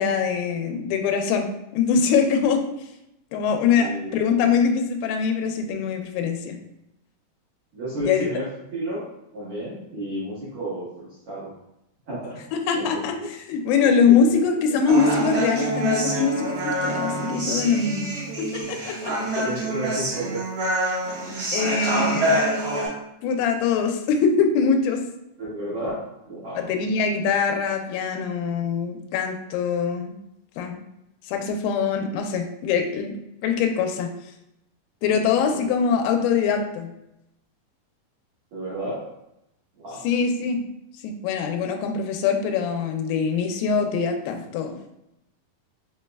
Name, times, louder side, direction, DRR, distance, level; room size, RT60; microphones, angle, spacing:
voice 1, 0.0-2.6 3.3-6.6 8.0-8.3 12.5-18.1 18.4-19.4 21.5-22.5 23.2-25.0 26.5-30.1 30.6-30.8 31.3-33.2 33.4-34.1 35.0-36.9 40.0-40.6 41.0-44.8, left 6 dB, 85° left, 4 dB, 2.5 m, -23 dB
voice 2, 3.7-4.5 7.7-11.5 12.1-12.4 12.7-13.3 14.0-14.3 19.4-20.4 25.4-26.0 26.3-26.7 35.4-35.7 38.5-39.1 39.8-40.1, right 1 dB, 70° right, -11 dB, 1.3 m, -32 dB
Human voice, 14.9-22.9, right 1 dB, 55° right, 1.9 m, -26 dB
5.6 x 3.1 x 2.3 m, 0.85 s
omnidirectional pair, 4.5 m